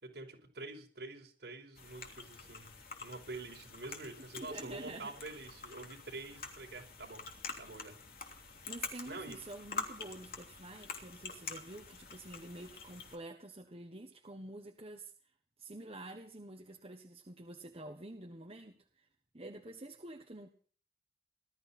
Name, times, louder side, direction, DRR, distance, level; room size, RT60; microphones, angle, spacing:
voice 1, 0.0-2.7 3.0-7.2 7.6-7.9 9.0-9.4, right 2 dB, 65° right, 1 dB, 5.0 m, -47 dB
sound 1, 1.7-13.2, left 4 dB, 55° left, 3.0 m, -46 dB
voice 2, 4.4-5.1 8.7-15.1 15.6-19.1 19.3-20.5, right 2 dB, 35° right, 2 dB, 1.3 m, -48 dB
20.0 x 13.0 x 4.4 m, 0.44 s
head